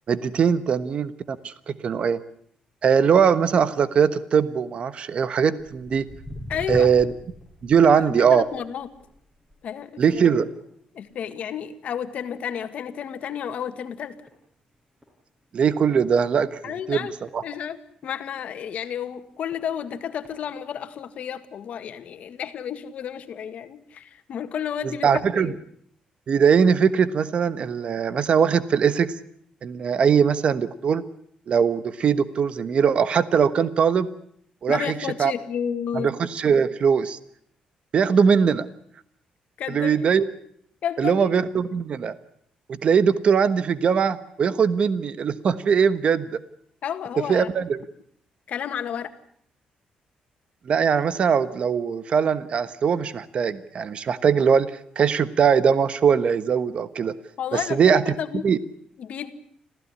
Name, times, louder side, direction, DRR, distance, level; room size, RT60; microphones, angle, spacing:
voice 1, 0.1-2.2 2.8-6.1 6.7-7.1 7.6-8.4 10.0-10.5 15.5-17.1 17.3-17.4 25.0-25.5 26.3-29.1 29.6-31.0 31.5-34.1 34.6-35.3 35.9-37.2 37.9-38.7 39.7-40.2 41.0-42.1 42.8-46.4 47.3-47.8 50.7-57.1 57.5-58.0 58.4-58.6, right 6 dB, 45° right, 14 dB, 1.2 m, -21 dB
Walk footsteps, 5.6-12.3 12.6-12.9 13.5-13.6 14.3-14.4 14.7-14.8 15.0-15.1 15.7-15.9 16.5-18.1 18.7-18.8 19.5-19.6 20.0-20.3 21.0-21.1, equal, 10° right, 6.2 m, -42 dB
voice 2, 6.5-6.9 8.1-8.9 9.6-10.4 10.9-14.2 16.6-17.1 17.4-17.8 18.0-25.6 34.7-36.1 39.6-40.0 40.8-41.3 46.8-47.5 48.5-49.1 57.4-58.5 59.0-59.3, left 8 dB, 60° left, 9 dB, 1.9 m, -31 dB
26.0 x 16.0 x 9.8 m, 0.66 s
cardioid pair, 145°, 3 cm